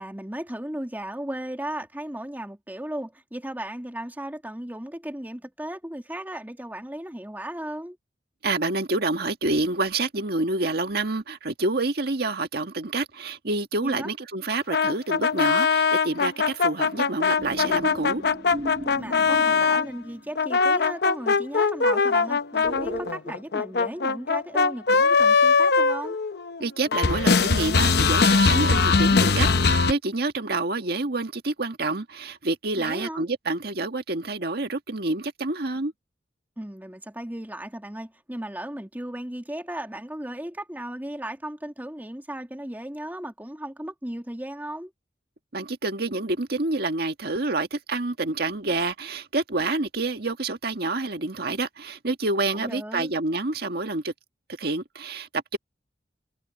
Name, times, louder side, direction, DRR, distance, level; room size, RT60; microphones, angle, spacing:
voice 1, 0.0-8.0 13.8-14.1 19.0-26.2 32.8-33.3 36.6-44.9 52.5-53.1, right 1 dB, 10° right, 2.3 m, -36 dB
voice 2, 8.4-18.2 26.6-35.9 45.5-54.1 54.6-55.6, right 2 dB, 65° right, 1.7 m, -28 dB
sound 1, 14.7-19.9 20.3-26.6 26.9-29.9, left 4 dB, 65° left, 0.8 m, -21 dB
sound 2, 17.4-20.5 22.6-23.1, equal, 35° right, 5.7 m, -37 dB
head